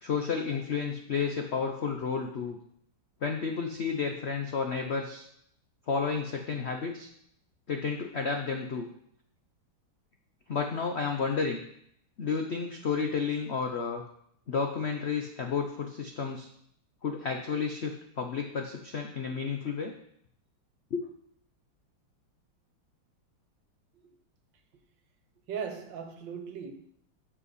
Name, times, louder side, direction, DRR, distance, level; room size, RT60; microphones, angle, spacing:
voice 1, 0.0-2.6 3.2-5.3 5.9-7.1 7.7-8.9 10.5-11.6 12.2-14.0 14.5-16.5 17.0-19.9 20.9-21.0, left 5 dB, 70° left, 0.6 m, -31 dB
voice 2, 25.5-26.7, right 7 dB, 70° right, 1.6 m, -38 dB
12.5 x 5.5 x 4.2 m
omnidirectional pair, 2.2 m